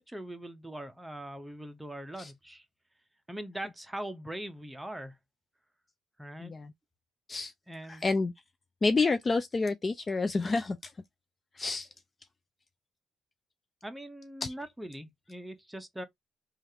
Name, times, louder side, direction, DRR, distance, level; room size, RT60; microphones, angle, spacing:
voice 1, 0.1-2.6 3.3-5.2 6.2-6.5 7.7-8.1 13.8-16.0, right 1 dB, 10° right, 0.7 m, -41 dB
voice 2, 6.4-6.7 7.3-7.5 7.9-8.3 8.8-10.9 11.6-11.9 14.4-14.5, left 3 dB, 30° left, 0.3 m, -29 dB
3.2 x 2.4 x 2.6 m
cardioid pair, 90°, 0 cm